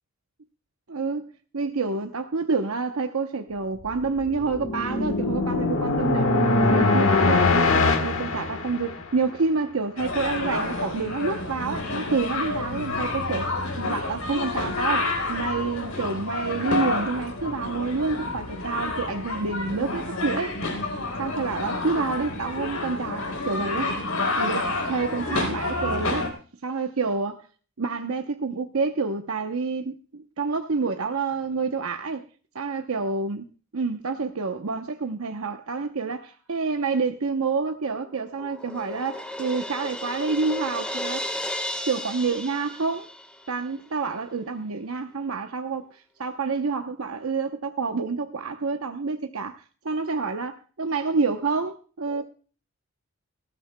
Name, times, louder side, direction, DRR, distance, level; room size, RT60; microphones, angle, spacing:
voice 1, 0.9-6.3 6.7-20.6 21.2-23.9 24.4-26.3 26.6-27.5 27.8-32.2 32.5-33.4 33.7-41.2 41.9-43.1 43.5-52.2, right 4 dB, 70° right, 0.8 m, -28 dB
sound 1, 4.0-9.2, left 3 dB, 60° left, 1.4 m, -22 dB
sound 2, 10.0-26.3, left 2 dB, 75° left, 3.8 m, -29 dB
Crash cymbal, 37.8-43.5, left 1 dB, 5° left, 1.4 m, -34 dB
18.5 x 14.0 x 2.2 m
head